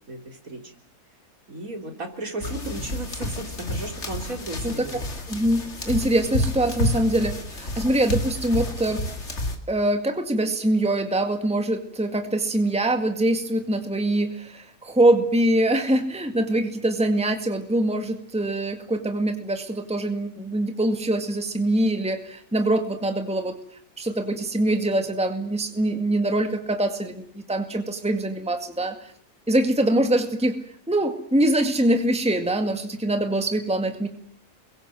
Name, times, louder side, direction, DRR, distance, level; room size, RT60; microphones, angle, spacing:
voice 1, 0.1-0.7 1.5-5.0 6.0-6.2, right 2 dB, 65° right, 4 dB, 4.1 m, -35 dB
sound 1, 2.4-9.6, left 1 dB, 45° left, 2.9 m, -30 dB
voice 2, 5.3-9.0 9.7-23.6 24.0-29.1 29.5-30.6 30.9-34.1, right 1 dB, 5° right, 6 dB, 2.0 m, -23 dB
27.5 x 23.0 x 7.7 m, 0.65 s
omnidirectional pair, 1.6 m